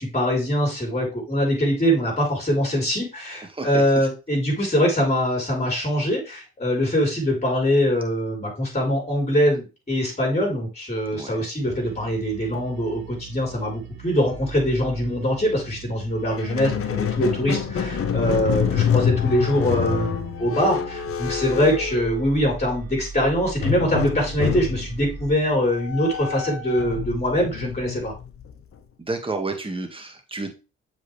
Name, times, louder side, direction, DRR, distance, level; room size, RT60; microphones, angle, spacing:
voice 1, 0.0-28.1, equal, 20° left, 0 dB, 4.5 m, -23 dB
voice 2, 3.5-4.1 11.1-11.5 21.5-21.6 29.0-30.5, right 3 dB, 15° right, 4 dB, 2.1 m, -31 dB
sound 1, 11.6-25.4, right 5 dB, 75° right, 1.4 m, -40 dB
Squeak, 16.3-22.7 23.6-28.8, left 8 dB, 45° left, 1.0 m, -27 dB
7.3 x 5.5 x 3.5 m, 0.29 s
hypercardioid pair, 50°, 32 cm